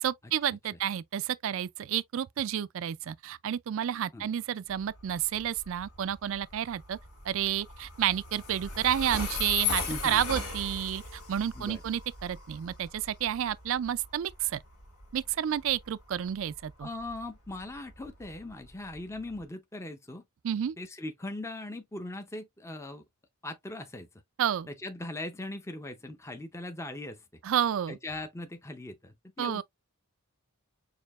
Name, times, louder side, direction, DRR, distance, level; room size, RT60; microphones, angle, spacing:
voice 1, 0.0-7.0 7.3-14.6 15.1-16.9 20.4-20.7 24.4-24.7 27.4-28.0 29.4-29.6, right 10 dB, 60° right, 0.3 m, -30 dB
Train, 4.7-19.4, left 5 dB, 80° left, 2.1 m, -39 dB
voice 2, 9.9-10.2 11.5-11.8 16.8-20.2 20.8-23.0 23.4-24.1 24.7-27.2 27.9-29.6, left 2 dB, 10° left, 0.5 m, -40 dB
6.6 x 2.8 x 2.3 m
head